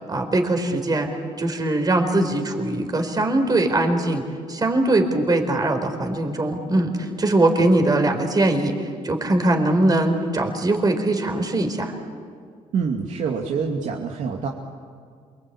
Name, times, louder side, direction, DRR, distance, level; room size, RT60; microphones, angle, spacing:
voice 1, 0.1-1.1 1.4-4.2 4.5-11.9, right 2 dB, 30° right, 5 dB, 4.4 m, -21 dB
voice 2, 12.7-14.5, right 5 dB, 70° right, 0 dB, 2.5 m, -26 dB
27.5 x 24.0 x 8.8 m, 2.1 s
cardioid pair, 105°, 13 cm